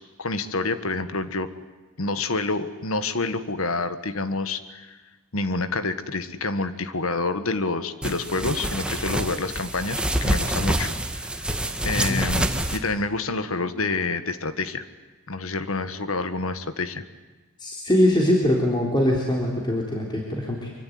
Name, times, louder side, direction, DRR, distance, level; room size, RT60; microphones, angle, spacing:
voice 1, 0.2-1.5 2.0-5.0 5.3-11.5 11.8-14.8 15.3-17.0, left 3 dB, 65° left, 11 dB, 1.6 m, -28 dB
sound 1, 8.0-12.8, right 1 dB, 5° right, 1.8 m, -26 dB
voice 2, 17.6-20.7, left 1 dB, 20° left, -1 dB, 3.6 m, -22 dB
25.0 x 24.5 x 9.4 m, 1.2 s
head